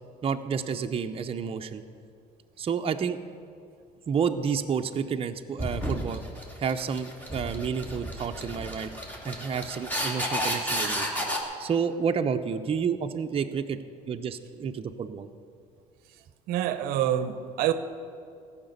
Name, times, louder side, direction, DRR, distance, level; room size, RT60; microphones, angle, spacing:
voice 1, 0.2-1.8 2.6-3.2 4.1-6.2 6.6-8.9 9.2-11.1 11.6-13.8 14.1-15.3, right 6 dB, 35° right, 6 dB, 0.7 m, -30 dB
sound 1, 5.6-11.4, equal, 10° left, 2.6 m, -32 dB
voice 2, 16.5-17.7, right 11 dB, 80° right, 11 dB, 0.7 m, -26 dB
15.0 x 5.9 x 8.0 m, 2.4 s
supercardioid pair, 90°, 16 cm